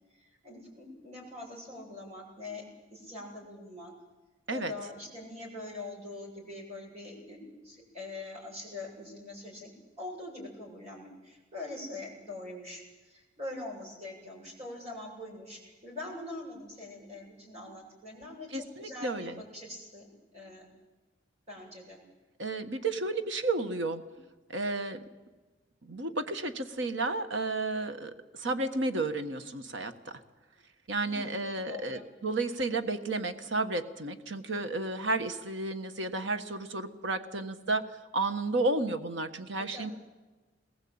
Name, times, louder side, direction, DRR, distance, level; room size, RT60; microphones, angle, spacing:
voice 1, 0.1-2.6 2.9-3.9 4.5-7.4 7.6-20.7 21.5-22.0 31.0-32.1 39.7-39.9, left 2 dB, 35° right, -2 dB, 7.9 m, -43 dB
voice 2, 18.5-19.4 22.4-24.0 24.5-25.0 25.8-30.1 30.9-39.9, right 2 dB, 75° right, 8 dB, 1.5 m, -32 dB
21.5 x 20.0 x 8.8 m, 1.2 s
head